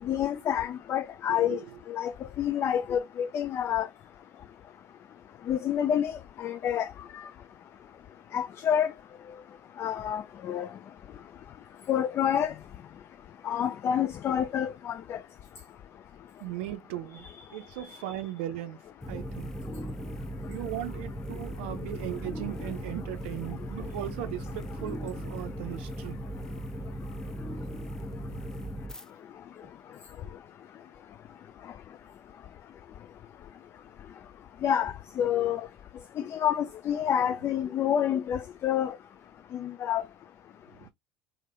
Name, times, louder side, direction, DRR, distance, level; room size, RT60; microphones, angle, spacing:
voice 1, 0.1-1.6 1.9-2.1 2.4-3.9 5.5-6.1 6.4-6.9 8.3-8.9 9.8-10.2 10.5-10.7 11.9-12.5 13.5-15.2 34.6-35.6 36.4-38.9 39.6-40.0, left 9 dB, 45° left, 0.3 m, -28 dB
voice 2, 1.3-1.6 16.4-18.8 19.1-19.5 20.5-26.2 28.3-28.5 40.8-40.9, right 13 dB, 70° right, 0.5 m, -38 dB
sound 1, 19.0-29.0, equal, 10° left, 0.6 m, -38 dB
3.2 x 2.7 x 2.4 m
hypercardioid pair, 65°, 6 cm